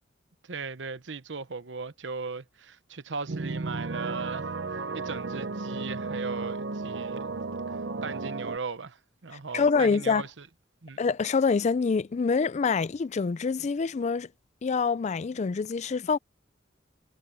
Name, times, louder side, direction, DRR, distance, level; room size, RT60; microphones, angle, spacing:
voice 1, 0.4-7.3 7.7-10.5 10.8-11.0, right 4 dB, 90° right, 0.9 m, -38 dB
sound 1, 3.3-8.6, right 3 dB, 70° right, 0.7 m, -34 dB
voice 2, 9.5-10.2 11.0-14.3 14.6-16.2, left 5 dB, 40° left, 0.4 m, -26 dB
head